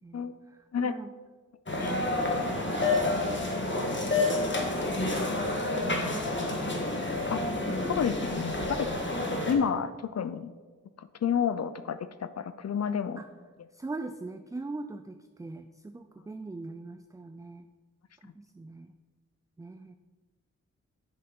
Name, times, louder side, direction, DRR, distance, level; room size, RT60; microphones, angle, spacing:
voice 1, 0.0-0.3 0.8-1.1 1.9-3.0 4.1-5.4 6.1-7.7 8.2-8.8 13.2-13.3 13.7-17.6 18.4-18.9 19.6-20.0, right 3 dB, 10° right, 8 dB, 0.3 m, -42 dB
sound 1, 1.7-9.5, left 2 dB, 35° left, 1.4 m, -29 dB
voice 2, 7.9-8.9 9.4-10.5 11.0-13.2, left 7 dB, 55° left, 13 dB, 0.5 m, -30 dB
7.8 x 6.5 x 3.7 m, 1.4 s
cardioid pair, 60°, 31 cm